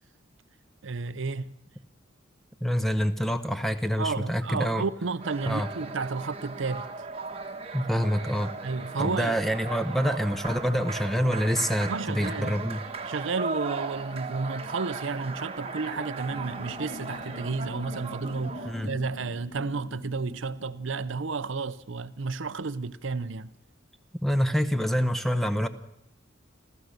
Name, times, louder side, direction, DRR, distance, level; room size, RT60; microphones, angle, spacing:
voice 1, 0.8-1.5 4.0-6.9 8.6-9.4 9.9-10.0 11.9-12.6 13.0-23.5, right 4 dB, 70° right, 0.7 m, -32 dB
voice 2, 2.6-4.8 5.5-5.7 7.7-8.5 9.0-12.8 18.6-18.9 24.2-25.7, equal, ahead, 1.0 m, -26 dB
sound 1, 5.2-18.9, right 4 dB, 30° right, 1.3 m, -37 dB
sound 2, 16.3-21.3, left 2 dB, 55° left, 0.9 m, -45 dB
30.0 x 13.5 x 6.6 m
head